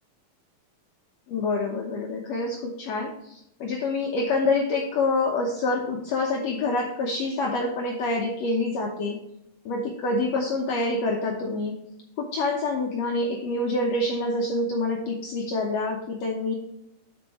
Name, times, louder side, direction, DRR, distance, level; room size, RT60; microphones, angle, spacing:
voice 1, 1.3-9.2 9.7-11.8 12.2-16.5, left 2 dB, 75° left, -1 dB, 1.5 m, -26 dB
12.5 x 4.6 x 3.0 m, 0.82 s
omnidirectional pair, 4.4 m